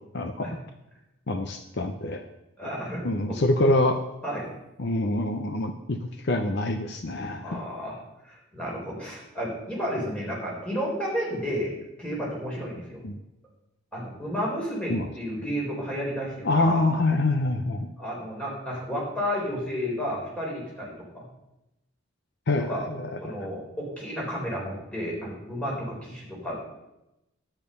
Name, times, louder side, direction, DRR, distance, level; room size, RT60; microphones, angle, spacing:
voice 1, 0.1-0.5 1.3-2.2 3.0-4.0 4.8-6.0 6.2-7.6 13.0-13.1 14.9-15.1 16.4-17.9 22.5-23.5, left 2 dB, 55° left, 8 dB, 0.7 m, -25 dB
voice 2, 2.6-3.4 4.2-4.5 7.4-8.0 8.2-13.0 13.9-16.8 18.0-21.2 22.6-22.9 23.2-26.6, equal, 5° left, -5 dB, 3.9 m, -32 dB
10.5 x 8.9 x 5.3 m, 0.92 s
head